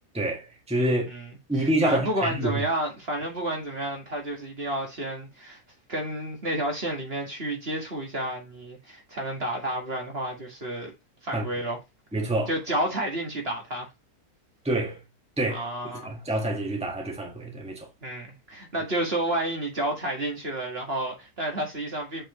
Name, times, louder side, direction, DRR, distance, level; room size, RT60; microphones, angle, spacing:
voice 1, 0.1-1.1 1.5-2.5 11.3-11.4 12.1-12.5 14.6-15.0 15.4-15.7 16.0-17.9, right 1 dB, 5° right, 1.7 m, -27 dB
voice 2, 1.6-5.6 5.9-10.9 11.2-11.8 12.5-13.9 15.5-16.1 18.0-22.2, right 1 dB, 40° right, 2.1 m, -30 dB
8.2 x 4.8 x 3.2 m
omnidirectional pair, 1.6 m